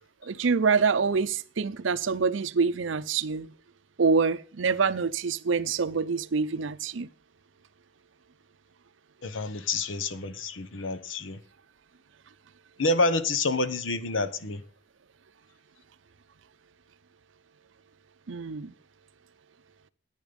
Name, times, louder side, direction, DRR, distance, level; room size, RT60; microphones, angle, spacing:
voice 1, 0.2-3.5 4.0-7.1 18.3-18.7, right 5 dB, 75° right, 0.6 m, -26 dB
voice 2, 9.2-11.4 12.8-14.6, left 2 dB, 80° left, 1.1 m, -28 dB
10.5 x 9.4 x 5.3 m
head